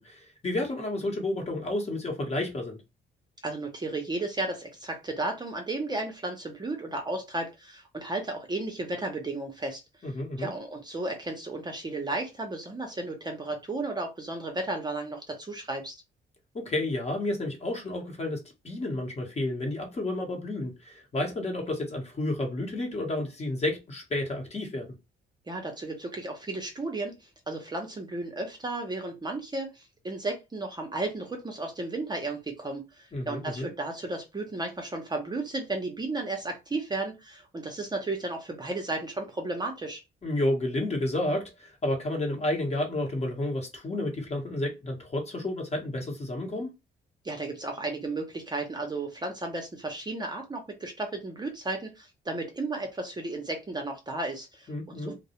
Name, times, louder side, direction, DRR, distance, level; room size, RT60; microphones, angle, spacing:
voice 1, 0.0-2.8 10.0-10.5 16.5-24.9 33.1-33.7 40.2-46.7 54.7-55.1, left 1 dB, 35° left, 0.9 m, -31 dB
voice 2, 3.4-9.8 10.4-16.0 25.5-40.0 47.2-55.1, right 2 dB, 20° right, 0.6 m, -34 dB
2.3 x 2.0 x 2.8 m
cardioid pair, 90°, 20 cm